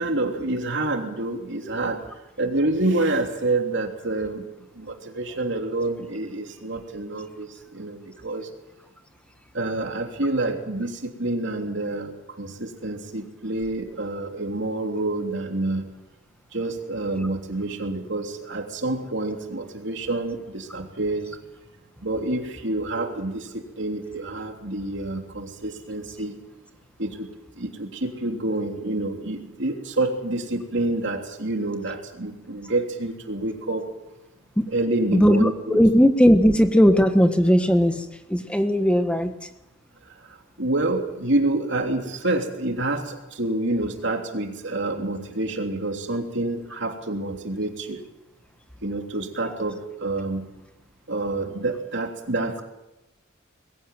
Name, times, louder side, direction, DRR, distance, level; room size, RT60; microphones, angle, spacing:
voice 1, 0.0-2.0 2.4-4.4 4.7-8.5 9.5-15.8 16.5-21.4 22.0-26.4 27.0-33.9 34.7-35.8 40.6-48.0 48.8-50.5 51.1-52.6, right 2 dB, 60° right, 3 dB, 3.3 m, -28 dB
voice 2, 35.1-39.3, equal, 5° left, 8 dB, 1.5 m, -18 dB
21.5 x 16.0 x 9.2 m, 0.94 s
head